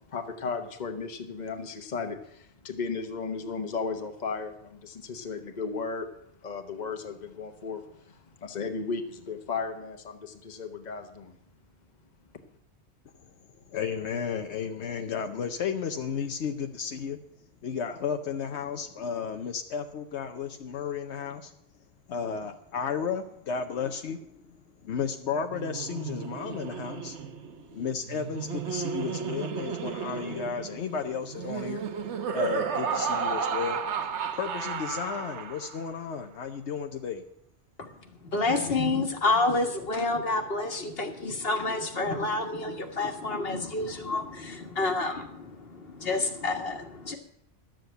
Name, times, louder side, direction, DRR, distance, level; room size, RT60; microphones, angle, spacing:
voice 1, 0.1-6.1 6.4-11.3, left 4 dB, 40° left, 6 dB, 1.2 m, -35 dB
voice 2, 13.2-17.2 17.6-21.5 22.1-31.8 32.3-33.8 34.3-37.2, left 6 dB, 80° left, 6 dB, 1.0 m, -33 dB
Laughter, 25.4-35.9, right 6 dB, 85° right, 1.2 m, -33 dB
voice 3, 38.2-47.2, left 3 dB, 60° left, 5 dB, 1.7 m, -29 dB
12.0 x 7.7 x 7.8 m, 0.74 s
omnidirectional pair, 1.1 m